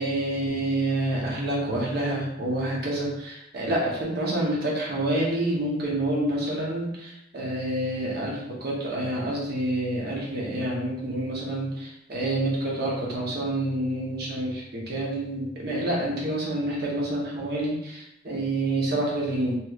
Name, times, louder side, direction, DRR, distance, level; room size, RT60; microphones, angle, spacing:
voice 1, 0.0-19.5, right 1 dB, 55° right, -4 dB, 0.9 m, -28 dB
3.0 x 2.9 x 2.4 m, 0.83 s
head